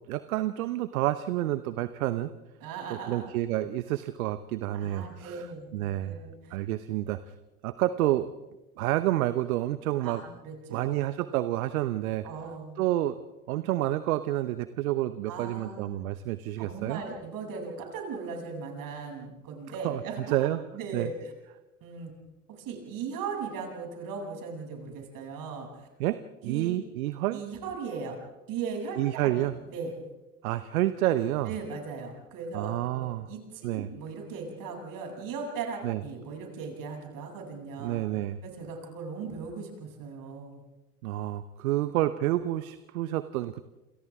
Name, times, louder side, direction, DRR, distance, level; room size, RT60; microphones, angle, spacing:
voice 1, 0.1-2.3 2.9-5.5 5.7-6.2 6.5-7.2 7.6-8.3 8.8-10.2 10.7-12.2 12.8-13.2 13.5-17.0 19.8-20.0 20.3-20.6 20.9-21.1 26.0-27.4 28.9-29.5 30.4-31.5 32.5-33.3 33.6-33.9 35.8-36.0 37.8-38.4 41.0-43.6, right 15 dB, 65° right, 13 dB, 1.0 m, -29 dB
voice 2, 2.6-3.3 4.7-6.6 10.0-11.0 12.2-12.8 15.3-15.9 16.6-20.4 20.7-21.3 21.8-22.1 22.5-25.9 26.4-26.7 27.3-28.2 28.5-30.0 31.5-38.0 38.4-40.6, right 5 dB, 45° right, 1 dB, 7.9 m, -38 dB
28.5 x 28.0 x 3.7 m, 1.1 s
figure-of-eight pair, 80°, 45 cm